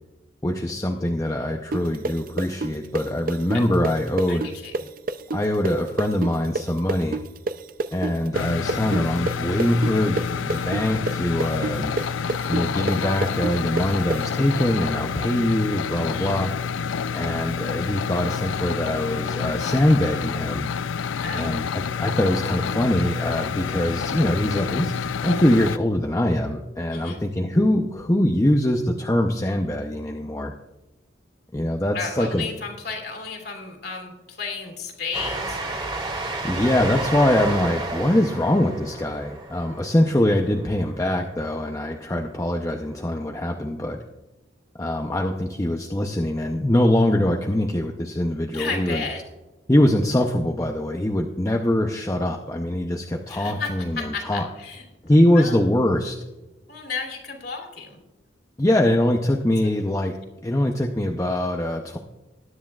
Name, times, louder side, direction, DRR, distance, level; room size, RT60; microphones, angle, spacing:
voice 1, 0.4-4.5 5.3-7.2 7.9-11.9 12.5-16.5 17.1-20.7 21.3-21.7 22.0-30.5 31.5-32.5 36.4-44.0 44.8-49.1 49.7-54.5 55.0-56.2 58.6-60.1 60.4-62.0, left 1 dB, 15° left, 2 dB, 0.6 m, -23 dB
sound 1, 1.7-9.3 9.6-14.2, right 2 dB, 45° right, 0.5 m, -27 dB
voice 2, 4.3-4.8 16.0-16.4 21.2-21.6 26.9-27.2 31.9-35.6 48.5-49.2 53.3-54.8 55.3-55.5 56.7-58.0 59.6-59.7 60.0-60.1, left 4 dB, 55° left, 2 dB, 2.8 m, -33 dB
sound 2, 8.3-25.8, left 6 dB, 90° left, 0.4 m, -28 dB
Train, 35.1-41.3, right 2 dB, 25° right, 1.8 m, -31 dB
20.0 x 9.9 x 2.4 m, 1.1 s
head